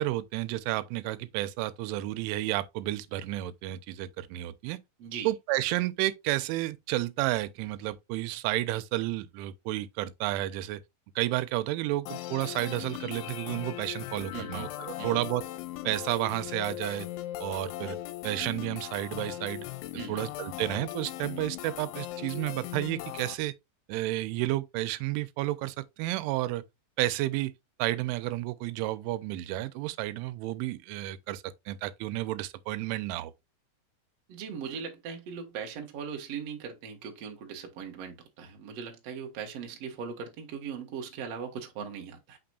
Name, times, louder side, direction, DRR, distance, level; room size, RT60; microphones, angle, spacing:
voice 1, 0.0-4.8 5.3-10.8 11.2-15.4 15.8-17.1 17.4-18.0 18.2-19.7 20.1-23.5 23.9-26.6 27.0-27.5 27.8-33.3, right 16 dB, 85° right, 3.1 m, -31 dB
voice 2, 5.0-5.3 14.3-15.3 19.9-20.3 34.3-42.4, right 6 dB, 70° right, 1.5 m, -39 dB
sound 1, 12.1-23.3, left 15 dB, 85° left, 3.0 m, -39 dB
6.7 x 5.9 x 2.3 m
omnidirectional pair, 5.4 m